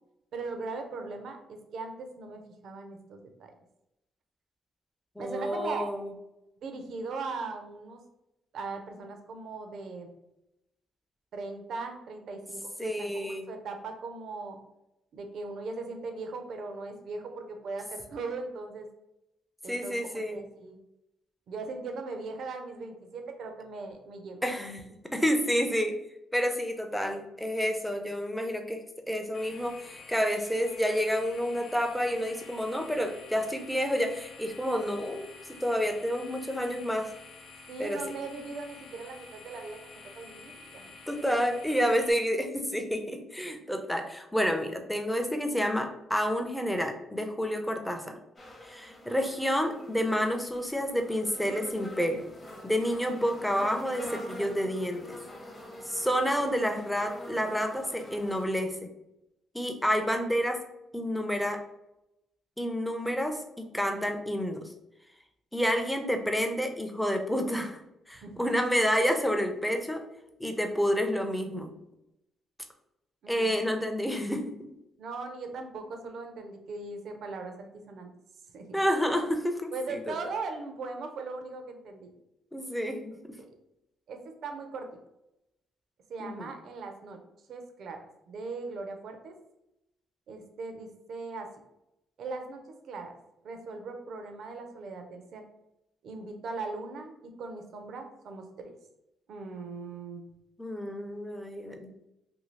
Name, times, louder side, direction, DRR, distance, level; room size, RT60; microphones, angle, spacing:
voice 1, 0.3-3.5 5.2-5.9 6.6-8.0 8.5-10.1 11.3-14.6 15.1-18.9 19.6-20.8 21.5-24.5 37.7-40.9 68.2-68.5 73.2-73.7 75.0-78.1 78.5-78.8 79.7-82.1 83.4-83.5 84.1-85.0 86.1-87.2 87.5-89.3 90.3-91.5 92.2-92.6 92.9-93.1 93.4-95.4 96.0-98.7 99.3-100.2, right 3 dB, 70° right, 5 dB, 0.5 m, -39 dB
voice 2, 5.2-6.1 12.8-13.5 19.7-20.4 24.4-24.8 25.1-26.0 26.3-35.3 35.6-37.1 37.8-38.0 41.1-48.2 48.6-52.2 52.6-55.1 55.9-58.7 59.5-60.6 60.9-61.6 62.6-64.6 65.5-67.8 68.1-70.0 70.4-71.7 73.3-74.5 78.7-80.0 82.5-83.1 86.2-86.5 100.6-101.9, equal, 5° left, 5 dB, 0.5 m, -29 dB
sound 1, 29.3-42.1, left 4 dB, 65° left, 0.4 m, -49 dB
sound 2, 48.4-58.5, equal, 25° left, 0.8 m, -45 dB
2.7 x 2.6 x 3.1 m, 0.88 s
cardioid pair, 90°, 0 cm